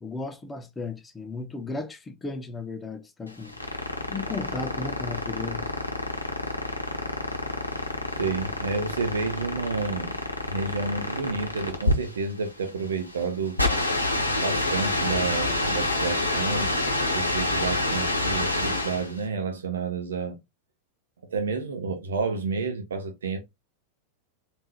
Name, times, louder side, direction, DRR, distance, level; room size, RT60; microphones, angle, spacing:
voice 1, 0.0-3.5 4.1-5.7, left 3 dB, 15° left, 0.5 m, -35 dB
sound 1, 3.3-19.2, left 2 dB, 80° left, 0.8 m, -28 dB
voice 2, 8.2-10.2 10.5-13.6 14.4-16.7 17.1-20.4 21.3-23.4, right 4 dB, 65° right, 0.6 m, -30 dB
3.6 x 2.5 x 3.0 m
figure-of-eight pair, 90°, 0 cm